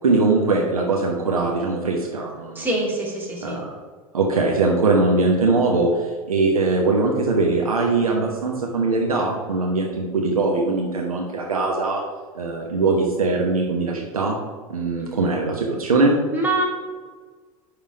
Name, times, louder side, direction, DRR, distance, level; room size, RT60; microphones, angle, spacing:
voice 1, 0.0-2.7 3.4-3.7 4.1-12.0 12.3-14.4 14.7-16.1, right 3 dB, 80° right, 0 dB, 1.0 m, -21 dB
voice 2, 2.5-3.6 16.3-16.7, right 2 dB, 10° right, -4 dB, 2.2 m, -24 dB
10.5 x 3.5 x 4.9 m, 1.4 s
figure-of-eight pair, 85°, 18 cm